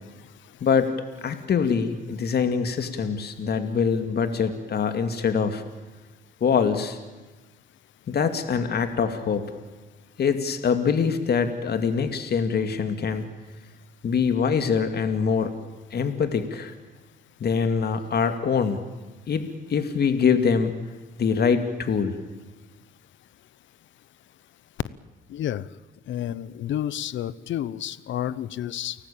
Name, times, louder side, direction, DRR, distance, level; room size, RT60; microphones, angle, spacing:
voice 1, 0.6-0.9 1.2-5.6 6.4-7.0 8.1-9.5 10.2-13.3 14.0-15.5 15.9-16.7 17.4-18.8 19.3-20.7 21.2-22.2, left 6 dB, 55° left, 8 dB, 2.4 m, -24 dB
voice 2, 25.3-25.7 26.1-29.0, left 11 dB, 70° left, 18 dB, 1.0 m, -30 dB
30.0 x 18.5 x 8.7 m, 1.2 s
cardioid pair, 90°, 20 cm